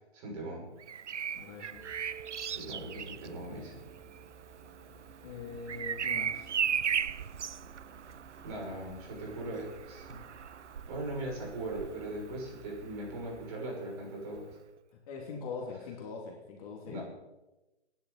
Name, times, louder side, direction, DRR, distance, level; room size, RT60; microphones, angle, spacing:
voice 1, 0.1-0.7 2.5-3.8 8.4-10.2 10.9-14.6 16.9-17.0, right 1 dB, 30° right, -2 dB, 6.5 m, -39 dB
Bird vocalization bird call bird song, 0.8-12.6 14.3-14.5, right 8 dB, 85° right, 0.6 m, -37 dB
voice 2, 1.4-1.8 5.2-6.6 14.9-17.0, left 5 dB, 30° left, 0 dB, 2.7 m, -42 dB
sound 1, 1.7-13.5, right 5 dB, 10° right, 3.2 m, -54 dB
23.0 x 11.0 x 4.2 m, 1.0 s
hypercardioid pair, 145°, 35 cm